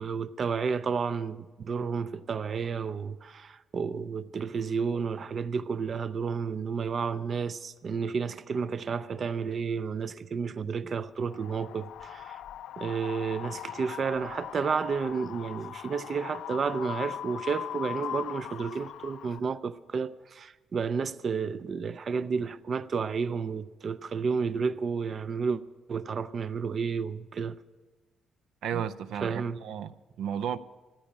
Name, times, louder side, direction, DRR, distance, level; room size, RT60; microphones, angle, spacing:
voice 1, 0.0-12.4 12.8-25.6 25.9-27.6 28.7-28.8 29.2-29.6, right 5 dB, 35° right, 0.4 m, -31 dB
Wind, 11.3-19.4, left 11 dB, 75° left, 0.4 m, -40 dB
voice 2, 28.6-30.6, right 8 dB, 90° right, 0.5 m, -33 dB
13.5 x 9.9 x 8.5 m
cardioid pair, 175°, 0 cm